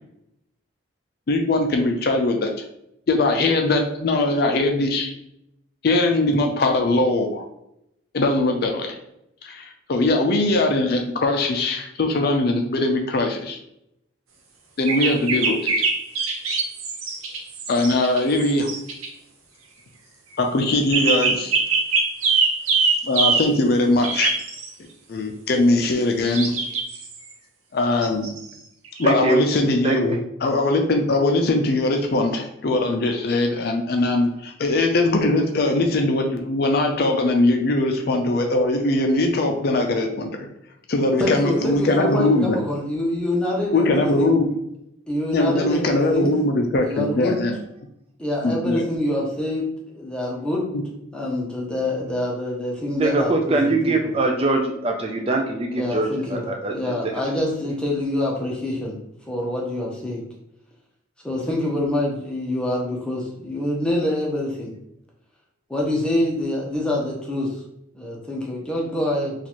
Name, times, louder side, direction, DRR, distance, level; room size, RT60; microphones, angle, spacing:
voice 1, 1.3-2.5 3.1-5.1 5.8-7.4 8.1-9.0 9.4-13.6 14.8-15.7 17.7-18.7 20.4-21.5 23.0-24.3 25.1-26.5 27.7-28.3 29.0-40.5 40.9-42.6 43.7-44.5 45.3-47.6 48.4-48.8, left 2 dB, 50° left, 4 dB, 0.4 m, -21 dB
sound 1, 14.9-19.1 20.9-23.5 24.0-24.7 26.3-27.2 28.0-28.4 28.8-29.1, right 4 dB, 90° right, 0.8 m, -22 dB
voice 2, 29.0-29.4 29.8-30.0 53.0-56.9, right 2 dB, 30° right, 2 dB, 0.3 m, -22 dB
voice 3, 41.2-44.3 45.1-46.3 46.8-47.3 48.2-50.6 51.1-54.1 55.8-58.9 59.3-60.2 61.2-64.7 65.7-67.6 67.9-69.3, left 1 dB, 5° left, -3 dB, 0.7 m, -26 dB
3.0 x 2.4 x 4.2 m, 0.80 s
head